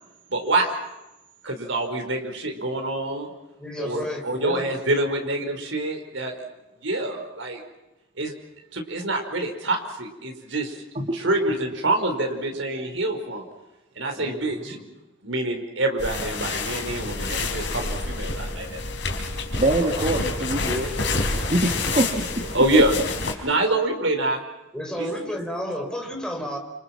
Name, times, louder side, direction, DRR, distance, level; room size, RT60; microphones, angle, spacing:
voice 1, 0.3-0.8 1.4-3.3 3.8-6.3 6.8-7.6 8.2-8.4 8.7-10.8 11.1-13.4 14.0-14.7 15.2-18.8 21.9-22.0 22.5-23.0 23.4-24.4 25.0-25.1, right 2 dB, 70° right, 3 dB, 5.0 m, -26 dB
voice 2, 3.6-4.7 12.5-12.6 14.2-14.8 24.7-26.6, equal, 5° left, 0 dB, 4.6 m, -32 dB
sound 1, 16.0-23.3, left 3 dB, 60° left, 4.6 m, -28 dB
voice 3, 19.6-20.9 21.5-22.6, right 1 dB, 35° right, 1 dB, 2.5 m, -24 dB
29.0 x 27.5 x 6.1 m, 0.96 s
head